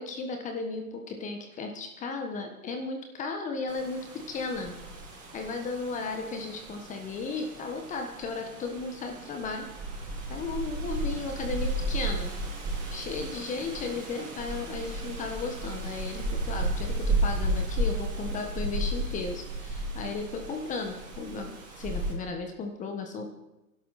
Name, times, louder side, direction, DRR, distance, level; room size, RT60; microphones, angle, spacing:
voice 1, 0.0-4.7 5.1-9.7 10.3-12.3 12.9-23.3, left 4 dB, 15° left, 4 dB, 1.4 m, -35 dB
sound 1, 3.7-22.1, right 1 dB, 20° right, 6.7 m, -34 dB
22.5 x 11.5 x 4.2 m, 0.98 s
hypercardioid pair, 135°, 43 cm